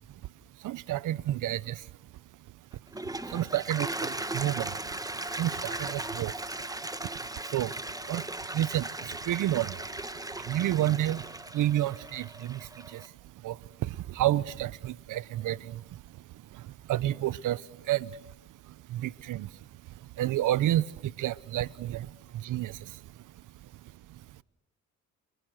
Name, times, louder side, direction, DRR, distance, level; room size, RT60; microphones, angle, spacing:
voice 1, 0.6-1.8 3.3-4.7 5.4-6.3 7.5-7.7 8.1-8.2 8.5-9.8 10.5-11.2 11.5-12.6 12.9-13.0 13.4-13.6 13.8-15.8 16.9-17.6 17.9-18.1 18.9-19.5 20.2-22.1 22.4-22.7, right 13 dB, 75° right, 20 dB, 0.9 m, -29 dB
Toilet flush, 2.7-13.1, right 2 dB, 10° right, 1.6 m, -37 dB
29.5 x 29.0 x 6.4 m, 0.93 s
supercardioid pair, 70°, 31 cm